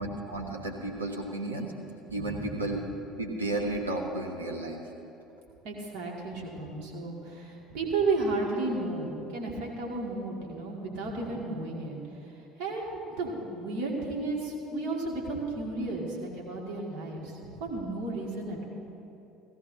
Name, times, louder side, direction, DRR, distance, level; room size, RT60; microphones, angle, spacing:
voice 1, 0.0-1.7 2.1-2.8 3.2-4.8, right 2 dB, 90° right, -1 dB, 0.9 m, -33 dB
voice 2, 2.1-2.7 5.6-12.0 12.6-18.7, right 3 dB, 60° right, -2 dB, 2.2 m, -33 dB
17.0 x 14.0 x 2.8 m, 2.9 s
figure-of-eight pair, 65°, 0 cm